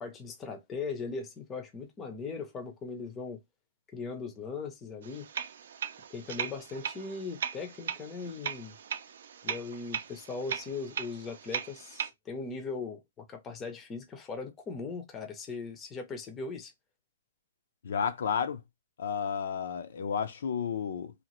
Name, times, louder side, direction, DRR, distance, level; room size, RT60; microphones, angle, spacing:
voice 1, 0.0-3.4 3.9-5.3 6.1-8.7 9.4-16.7, left 4 dB, 15° left, 0.6 m, -39 dB
sound 1, 5.0-12.1, right 8 dB, 60° right, 0.5 m, -38 dB
voice 2, 17.8-18.6 19.0-21.1, left 7 dB, 65° left, 0.5 m, -32 dB
2.8 x 2.4 x 2.9 m
hypercardioid pair, 165°, 0 cm